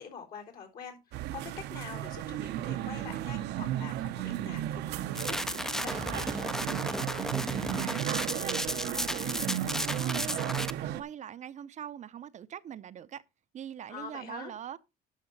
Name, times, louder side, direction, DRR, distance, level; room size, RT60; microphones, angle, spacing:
voice 1, 0.0-6.3 13.9-14.5, left 7 dB, 65° left, 3.8 m, -45 dB
sound 1, 1.1-11.0, right 13 dB, 85° right, 0.7 m, -34 dB
sound 2, 5.1-10.7, equal, 5° left, 0.4 m, -34 dB
voice 2, 7.2-13.2 13.5-14.8, right 9 dB, 45° right, 0.5 m, -42 dB
11.5 x 5.9 x 3.9 m
cardioid pair, 115°, 17 cm